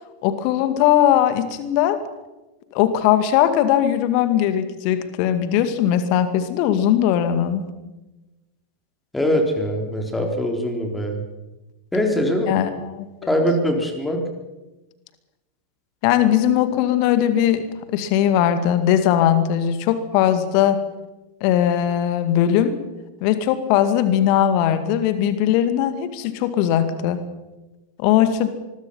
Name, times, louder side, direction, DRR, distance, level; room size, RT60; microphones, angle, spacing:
voice 1, 0.2-2.0 2.7-7.6 12.5-13.1 16.0-17.6 17.9-20.8 21.4-22.7 23.2-27.2 28.0-28.5, left 10 dB, 45° left, 10 dB, 2.3 m, -19 dB
voice 2, 9.1-11.2 11.9-12.5 13.2-14.2, equal, 5° left, 3 dB, 4.1 m, -22 dB
25.0 x 21.5 x 5.7 m, 1.1 s
figure-of-eight pair, 90°, 0 cm